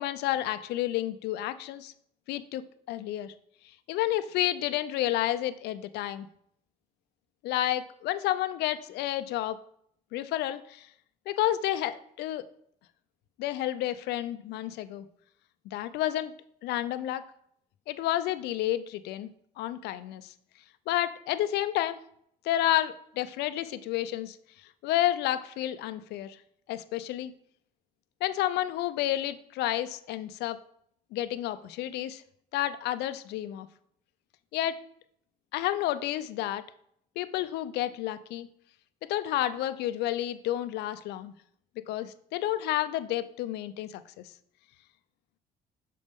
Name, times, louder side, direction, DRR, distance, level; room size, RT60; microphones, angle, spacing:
voice 1, 0.0-1.9 2.3-2.6 2.9-3.3 3.9-6.3 7.4-9.6 10.1-10.9 11.3-12.4 13.4-15.1 15.7-16.3 16.6-17.2 17.9-19.3 19.6-20.3 20.9-22.0 22.4-24.4 24.8-26.4 26.7-27.3 28.2-30.6 31.1-32.2 32.5-33.7 34.5-34.8 35.5-36.6 37.2-38.5 39.1-41.3 41.9-44.3, left 13 dB, 80° left, 13 dB, 0.4 m, -30 dB
6.5 x 4.2 x 3.5 m, 0.68 s
cardioid pair, 110°, 17 cm